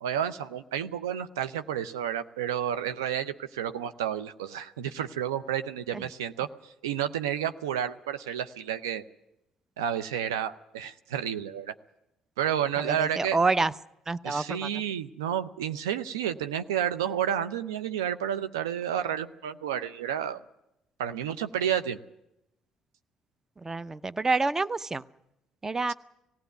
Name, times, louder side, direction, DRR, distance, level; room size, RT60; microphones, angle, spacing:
voice 1, 0.0-6.5 6.8-9.0 9.8-11.7 12.4-13.4 14.2-20.4 21.0-22.0, right 9 dB, 85° right, 10 dB, 0.7 m, -30 dB
voice 2, 12.8-13.7 14.1-14.7 23.6-25.0 25.6-25.9, right 3 dB, 20° right, 17 dB, 0.7 m, -28 dB
18.5 x 16.0 x 9.3 m, 0.86 s
hypercardioid pair, 55°, 2 cm